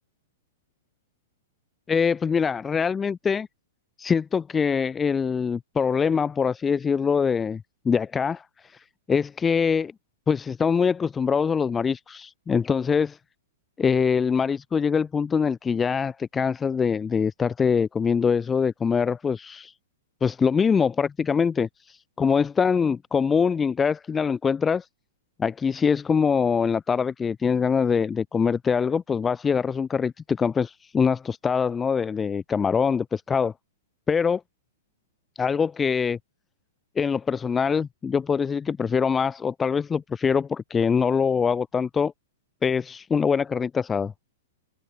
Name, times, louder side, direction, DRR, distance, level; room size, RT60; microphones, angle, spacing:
voice 1, 1.9-3.5 4.0-8.8 9.1-9.9 10.3-13.2 13.8-19.7 20.2-24.9 25.4-33.5 34.1-34.4 35.4-36.2 37.0-42.1 42.6-44.1, left 6 dB, 15° left, 5.2 m, -24 dB
hypercardioid pair, 125°, 0 cm